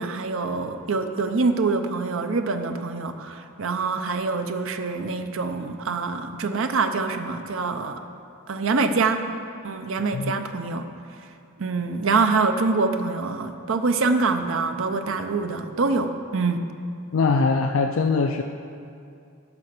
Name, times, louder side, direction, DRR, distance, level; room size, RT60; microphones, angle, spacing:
voice 1, 0.0-8.0 8.5-9.2 9.6-10.9 11.6-16.7, right 4 dB, 65° right, 7 dB, 0.7 m, -25 dB
voice 2, 17.1-18.4, left 4 dB, 70° left, 5 dB, 0.4 m, -22 dB
9.7 x 6.4 x 6.0 m, 2.4 s
head